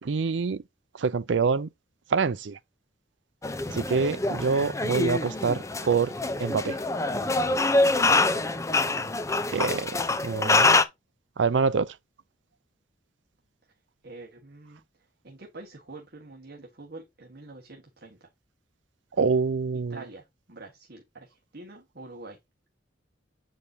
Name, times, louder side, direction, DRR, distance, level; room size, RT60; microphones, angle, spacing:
voice 1, 0.0-0.6 1.0-1.7 2.1-2.6 3.7-6.1 6.4-6.8 9.5-9.9 10.2-10.8 11.4-11.9 19.2-20.0, right 5 dB, 80° right, 0.5 m, -25 dB
sound 1, 3.4-10.8, left 3 dB, 15° left, 0.7 m, -25 dB
voice 2, 8.2-8.5 8.8-9.2 14.0-14.8 15.2-18.3 19.9-22.4, right 2 dB, 55° right, 1.6 m, -46 dB
8.0 x 5.3 x 2.8 m
head